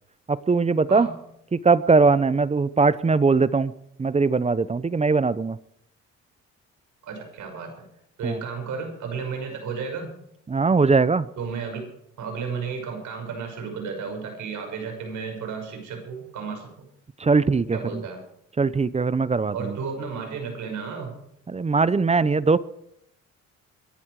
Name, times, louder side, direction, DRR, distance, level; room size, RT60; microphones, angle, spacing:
voice 1, 0.3-1.1 1.5-3.7 4.0-5.6 8.2-8.4 10.5-11.3 17.2-18.0 18.6-19.8 21.5-22.6, right 4 dB, 20° right, 18 dB, 0.7 m, -20 dB
voice 2, 7.0-7.7 8.2-10.1 11.4-11.9 12.2-16.7 17.7-18.2 19.5-21.1, right 5 dB, 75° right, 4 dB, 6.0 m, -33 dB
23.0 x 11.5 x 4.7 m, 0.75 s
cardioid pair, 90°, 30 cm